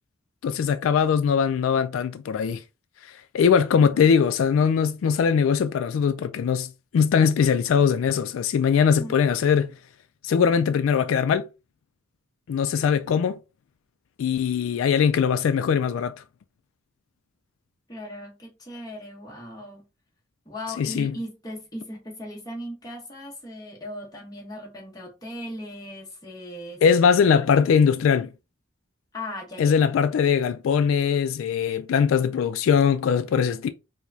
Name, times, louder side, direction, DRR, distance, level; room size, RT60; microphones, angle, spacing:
voice 1, 0.4-2.6 3.3-9.7 10.2-11.5 12.5-13.4 14.2-16.1 20.8-21.1 26.8-28.3 29.6-33.7, left 7 dB, 85° left, 0.3 m, -21 dB
voice 2, 17.9-19.9 20.4-27.4 29.1-29.8, left 1 dB, 20° left, 1.0 m, -38 dB
4.7 x 2.2 x 2.7 m
head